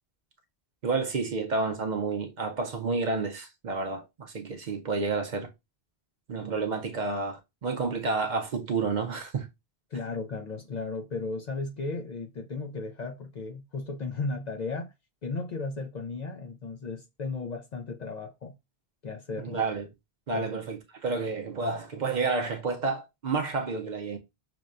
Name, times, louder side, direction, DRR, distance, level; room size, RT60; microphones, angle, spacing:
voice 1, 0.8-5.5 6.3-9.5 19.4-19.9 20.3-24.2, right 4 dB, 50° right, 0.6 m, -30 dB
voice 2, 9.9-14.9 15.2-18.5 19.0-19.6 20.3-20.5, left 3 dB, 55° left, 0.5 m, -35 dB
5.9 x 2.2 x 2.4 m
omnidirectional pair, 1.1 m